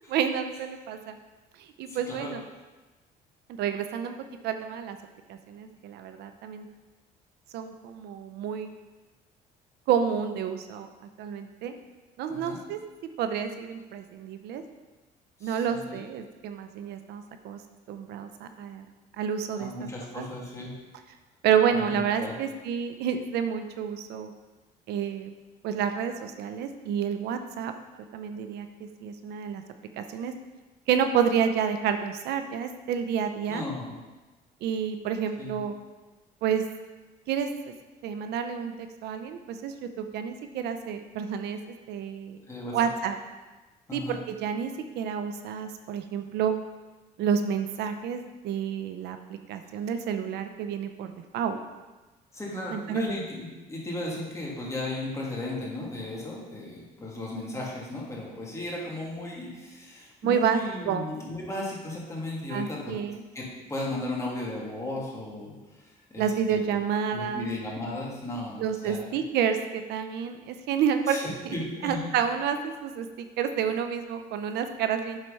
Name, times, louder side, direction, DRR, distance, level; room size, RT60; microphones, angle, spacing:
voice 1, 0.1-1.2 1.8-2.4 3.6-4.1 4.4-5.0 5.3-6.7 7.5-8.7 9.9-10.9 11.2-11.7 12.2-12.8 13.2-14.6 15.4-17.6 17.9-18.9 19.2-19.7 20.2-20.3 21.4-24.3 24.9-25.3 25.6-27.7 28.1-28.7 29.0-29.6 30.0-30.3 30.9-33.6 34.6-35.7 36.4-36.6 37.3-37.5 38.0-41.6 41.9-42.4 42.7-43.1 43.9-46.5 47.2-51.6 52.5-53.1 60.2-60.6 60.9-61.0 62.5-63.2 66.2-67.5 68.6-71.2 71.4-71.6 71.8-73.1 73.4-75.2, right 7 dB, 75° right, 8 dB, 0.6 m, -29 dB
voice 2, 1.9-2.3 12.3-12.6 15.4-16.0 19.6-20.7 21.7-22.3 33.5-34.0 35.4-35.6 42.5-42.8 43.9-44.2 52.3-63.0 63.3-65.5 66.1-66.8 67.1-69.1 71.1-72.1, left 2 dB, 15° left, -4 dB, 2.4 m, -35 dB
8.0 x 4.5 x 5.4 m, 1.2 s
cardioid pair, 110°, 17 cm